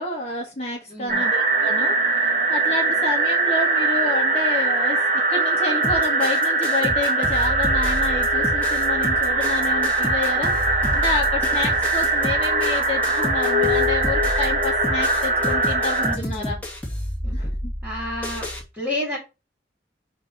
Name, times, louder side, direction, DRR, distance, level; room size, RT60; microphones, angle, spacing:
voice 1, 0.0-5.0 5.3-16.6 17.3-17.7, left 2 dB, 35° left, -1 dB, 1.4 m, -29 dB
voice 2, 0.9-1.3 16.0-16.6 17.2-17.4 17.8-18.5 18.7-19.2, left 1 dB, 10° right, -1 dB, 2.7 m, -30 dB
sound 1, 1.1-16.2, right 2 dB, 40° right, 0.9 m, -21 dB
sound 2, 5.8-18.6, equal, 10° left, 2.2 m, -30 dB
7.3 x 3.0 x 5.2 m, 0.27 s
head